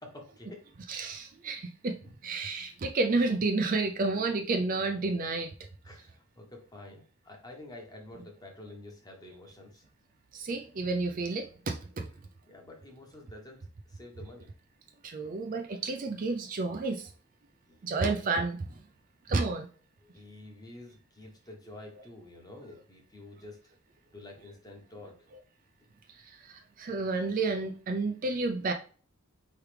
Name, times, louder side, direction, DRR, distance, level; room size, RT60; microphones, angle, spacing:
voice 1, 0.0-0.7 5.8-9.8 12.5-13.6 13.8-14.5 17.7-18.2 20.0-23.6 24.1-25.3, left 2 dB, 15° left, 1 dB, 1.0 m, -49 dB
voice 2, 0.9-5.5 10.3-12.1 15.0-17.1 17.8-18.8 19.2-19.7 26.1-28.7, right 3 dB, 40° right, 5 dB, 0.4 m, -31 dB
4.8 x 3.2 x 3.3 m, 0.41 s
head